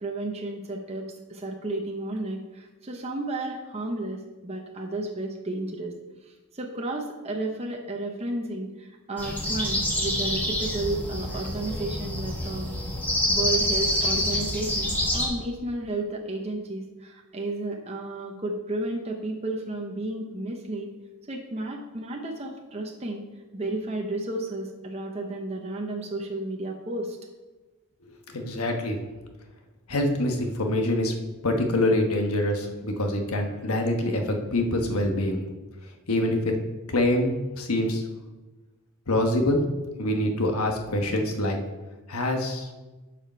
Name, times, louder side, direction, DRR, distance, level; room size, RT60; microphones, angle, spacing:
voice 1, 0.0-5.9 6.2-12.9 13.3-20.9 21.3-23.2 23.5-27.2, right 2 dB, 30° right, 1 dB, 0.8 m, -32 dB
sound 1, 9.2-15.3, left 1 dB, 10° left, 1.5 m, -27 dB
voice 2, 28.3-29.0 29.9-31.1 31.4-35.4 36.1-36.5 36.9-38.0 39.1-39.6 40.0-41.6 42.1-42.7, left 1 dB, 85° left, 3 dB, 1.3 m, -25 dB
12.0 x 5.1 x 4.4 m, 1.2 s
head